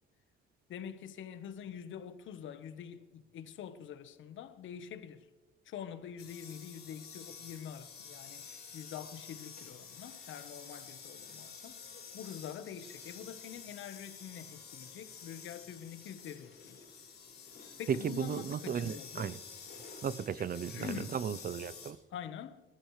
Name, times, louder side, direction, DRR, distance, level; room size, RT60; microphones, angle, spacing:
voice 1, 0.7-5.3 5.6-11.8 12.1-16.8 17.8-19.4 20.4-21.2 22.1-22.6, left 9 dB, 75° left, 1.2 m, -46 dB
sound 1, 6.2-21.9, left 6 dB, 55° left, 5.9 m, -50 dB
voice 2, 18.2-19.3 20.0-22.0, right 8 dB, 45° right, 0.6 m, -36 dB
27.0 x 14.5 x 3.2 m
cardioid pair, 90°, 20 cm